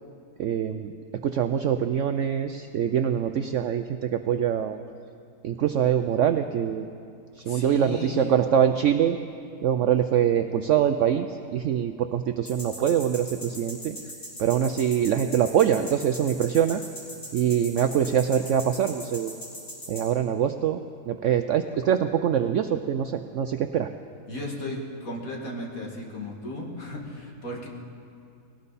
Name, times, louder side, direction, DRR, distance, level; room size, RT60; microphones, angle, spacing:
voice 1, 0.4-0.9 1.2-4.8 5.4-6.9 7.4-9.2 9.6-14.0 14.4-16.8 17.3-19.3 19.9-23.9, right 9 dB, 70° right, 8 dB, 0.7 m, -24 dB
voice 2, 7.5-8.4 24.3-24.8 25.0-27.7, left 1 dB, 55° left, -1 dB, 2.4 m, -35 dB
sound 1, 12.5-20.0, equal, 80° left, 4.5 m, -39 dB
19.5 x 18.0 x 4.1 m, 2.4 s
omnidirectional pair, 1.7 m